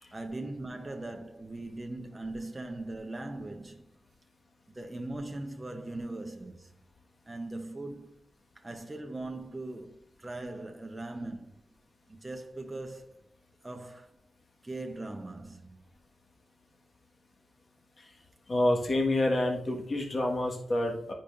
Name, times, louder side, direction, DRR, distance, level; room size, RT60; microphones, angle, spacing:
voice 1, 0.1-3.9 4.7-6.7 7.3-8.1 8.6-11.6 12.1-13.2 13.6-14.2 14.6-15.8, right 2 dB, 20° right, 0.7 m, -40 dB
voice 2, 18.5-21.1, left 1 dB, 45° left, 1.5 m, -28 dB
10.0 x 5.0 x 2.5 m
cardioid pair, 65°, 0 cm